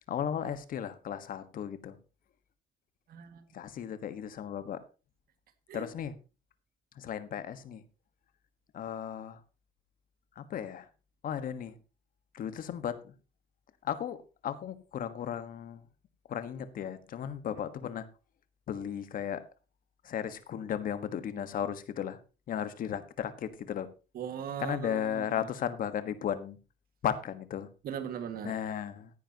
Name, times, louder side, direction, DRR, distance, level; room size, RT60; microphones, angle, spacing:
voice 1, 0.1-2.0 3.5-4.8 5.7-6.1 6.9-7.8 8.7-9.4 10.3-10.9 11.2-11.8 12.3-13.1 13.8-15.8 16.3-18.1 18.7-19.4 20.0-22.2 22.5-23.9 24.6-26.6 27.0-27.7 28.4-29.1, left 9 dB, 55° left, 11 dB, 1.5 m, -35 dB
voice 2, 3.1-3.4 5.7-5.9 24.1-25.5 27.8-28.6, right 8 dB, 60° right, 8 dB, 2.0 m, -39 dB
15.0 x 10.0 x 2.9 m, 0.32 s
cardioid pair, 110°, 17 cm